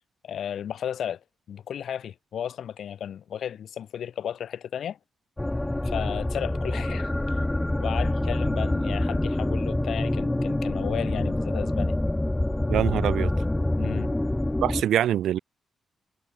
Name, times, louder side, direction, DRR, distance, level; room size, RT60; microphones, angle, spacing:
voice 1, 0.2-1.2 1.5-5.0 5.8-7.4 7.8-11.9 13.8-14.1, left 9 dB, 75° left, 4.5 m, -34 dB
sound 1, 5.4-14.8, left 1 dB, 15° left, 1.4 m, -26 dB
voice 2, 12.7-13.3 14.6-15.4, right 11 dB, 80° right, 0.7 m, -24 dB
cardioid pair, 60°, 0 cm